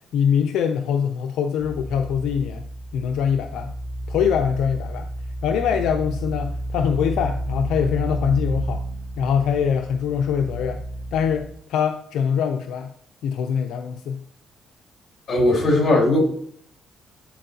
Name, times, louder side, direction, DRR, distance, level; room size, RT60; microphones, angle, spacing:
voice 1, 0.1-2.7 2.9-3.7 4.1-5.1 5.4-8.8 9.2-10.8 11.1-12.9 13.2-14.2, left 7 dB, 85° left, 6 dB, 0.4 m, -23 dB
sound 1, 1.6-11.5, right 1 dB, 10° right, 2.6 m, -31 dB
voice 2, 15.3-16.2, left 2 dB, 50° left, -3 dB, 2.7 m, -18 dB
11.5 x 4.4 x 2.8 m, 0.63 s
cardioid pair, 90°, 0 cm